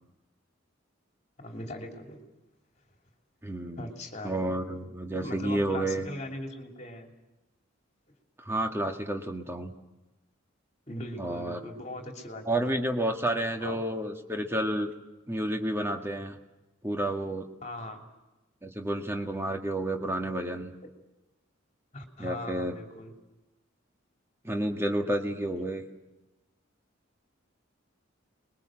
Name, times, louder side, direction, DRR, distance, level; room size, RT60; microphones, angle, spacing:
voice 1, 1.4-2.2 3.8-4.3 5.2-7.1 8.1-8.2 10.9-12.7 13.6-13.8 17.6-18.0 21.9-23.1, left 1 dB, 35° left, 2 dB, 3.2 m, -40 dB
voice 2, 3.4-3.9 4.2-6.1 8.5-9.7 11.2-11.6 12.5-14.9 15.3-16.4 16.8-17.5 18.6-20.7 22.2-22.8 24.4-25.8, right 1 dB, 10° right, 3 dB, 1.8 m, -30 dB
27.0 x 21.5 x 7.7 m, 1.0 s
head